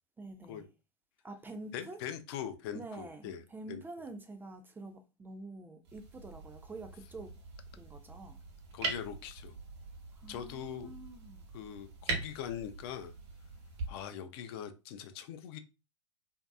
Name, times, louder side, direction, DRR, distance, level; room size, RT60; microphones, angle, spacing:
voice 1, 0.2-0.7 1.2-2.0 2.7-7.3 7.8-8.4 10.1-11.4, right 2 dB, 10° right, 0.4 m, -47 dB
voice 2, 1.7-3.4 3.7-3.8 8.7-9.6 10.3-10.9 11.5-13.1 13.9-15.6, left 9 dB, 55° left, 0.4 m, -42 dB
sound 1, 5.8-13.9, right 3 dB, 60° right, 1.0 m, -42 dB
2.6 x 2.2 x 2.3 m
hypercardioid pair, 100°, 16 cm